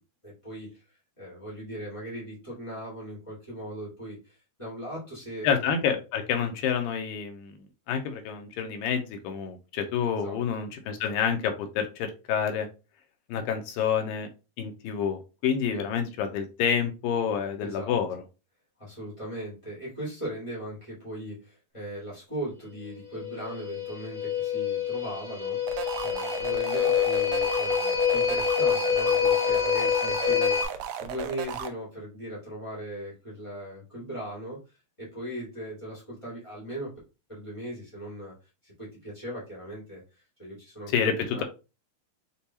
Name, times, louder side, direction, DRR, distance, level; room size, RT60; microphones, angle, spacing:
voice 1, 0.2-0.8 1.2-5.9 10.1-10.4 15.7-15.8 17.6-17.9 18.8-34.6 35.0-36.9 37.3-38.3 38.6-40.0 40.4-41.4, right 1 dB, 30° left, -7 dB, 0.5 m, -39 dB
voice 2, 5.4-7.6 7.9-12.7 13.3-14.3 14.6-18.2 40.9-41.4, left 7 dB, 80° left, 5 dB, 2.3 m, -28 dB
sound 1, 23.1-30.6, left 7 dB, 45° left, 1.1 m, -26 dB
sound 2, 25.7-31.7, right 9 dB, 80° right, 2.2 m, -35 dB
6.7 x 2.3 x 2.8 m, 0.30 s
omnidirectional pair, 4.2 m